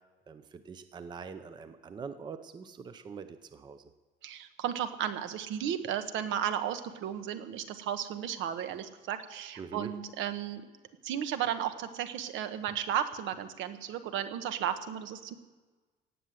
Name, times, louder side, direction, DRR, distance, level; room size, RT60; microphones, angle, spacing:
voice 1, 0.3-3.8 9.6-9.9, right 5 dB, 20° right, 10 dB, 0.6 m, -44 dB
voice 2, 4.2-10.6 11.0-15.3, right 9 dB, 75° right, 9 dB, 1.2 m, -34 dB
17.5 x 8.2 x 7.7 m, 1.3 s
cardioid pair, 175°, 20 cm